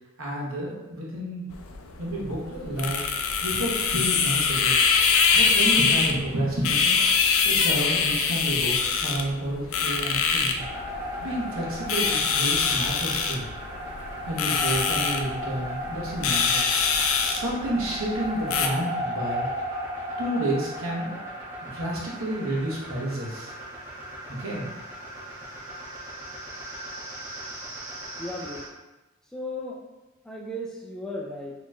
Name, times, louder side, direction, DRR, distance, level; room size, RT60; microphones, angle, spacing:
voice 1, 0.2-1.4 2.0-3.0 3.4-4.8 5.3-7.0 7.4-10.7 11.2-13.5 14.3-16.6 17.2-19.5 20.2-21.3 21.6-23.5 24.3-24.7, right 1 dB, 85° right, -4 dB, 1.0 m, -30 dB
sound 1, 1.5-18.7, left 5 dB, 85° left, 0.4 m, -24 dB
sound 2, 10.6-28.7, equal, 35° right, 1.0 m, -36 dB
voice 2, 28.2-28.7 29.3-29.8 30.2-31.5, left 1 dB, 5° left, -3 dB, 0.4 m, -35 dB
4.2 x 3.0 x 2.4 m, 1.0 s
head